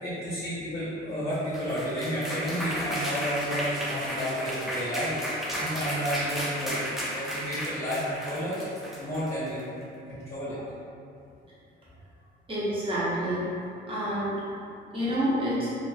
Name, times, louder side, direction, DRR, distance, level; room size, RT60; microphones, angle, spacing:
voice 1, 0.0-5.2 5.5-8.7 9.0-9.6 10.1-10.6, equal, 35° left, -12 dB, 0.7 m, -31 dB
sound 1, 1.3-9.6, equal, ahead, 0.4 m, -33 dB
voice 2, 12.5-13.4 13.9-14.4 14.9-15.7, equal, 25° right, -10 dB, 0.9 m, -28 dB
2.5 x 2.3 x 2.3 m, 2.5 s
cardioid pair, 90°, 20 cm